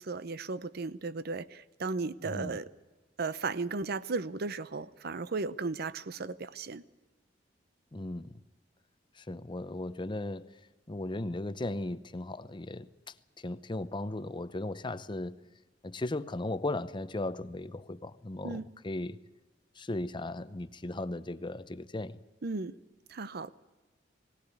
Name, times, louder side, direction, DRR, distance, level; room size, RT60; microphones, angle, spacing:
voice 1, 0.0-2.7 3.2-6.8 18.4-18.7 22.4-22.8 23.1-23.5, right 3 dB, 55° right, 0.7 m, -35 dB
voice 2, 2.2-2.6 7.9-8.3 9.2-10.5 10.9-12.9 13.4-15.4 15.8-19.2 19.8-22.2, left 2 dB, 25° left, 0.7 m, -36 dB
19.0 x 17.5 x 8.3 m
head